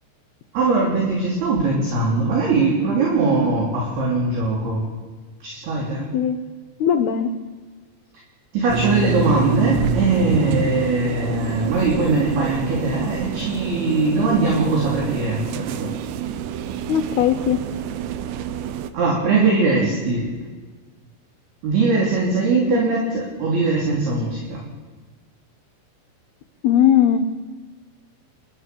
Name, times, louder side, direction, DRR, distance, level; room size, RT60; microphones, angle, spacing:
voice 1, 0.5-4.8 5.4-6.1 8.5-15.9 18.9-20.3 21.6-24.6, right 3 dB, 50° right, -3 dB, 5.0 m, -21 dB
voice 2, 6.8-7.3 16.9-17.6 26.6-27.2, left 9 dB, 85° left, 7 dB, 2.2 m, -18 dB
sound 1, 8.7-18.9, right 7 dB, 75° right, 2.7 m, -27 dB
30.0 x 12.5 x 6.9 m, 1.4 s
omnidirectional pair, 6.0 m